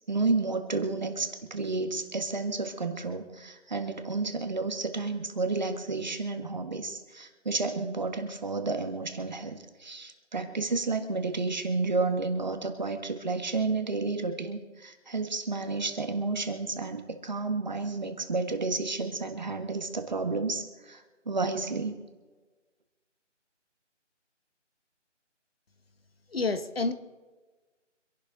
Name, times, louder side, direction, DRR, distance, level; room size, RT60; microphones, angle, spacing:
voice 1, 0.1-22.0, right 3 dB, 35° right, 6 dB, 1.6 m, -31 dB
voice 2, 26.3-26.9, left 3 dB, 50° left, 10 dB, 1.4 m, -28 dB
26.0 x 11.5 x 3.8 m, 1.3 s
figure-of-eight pair, 175°, 37 cm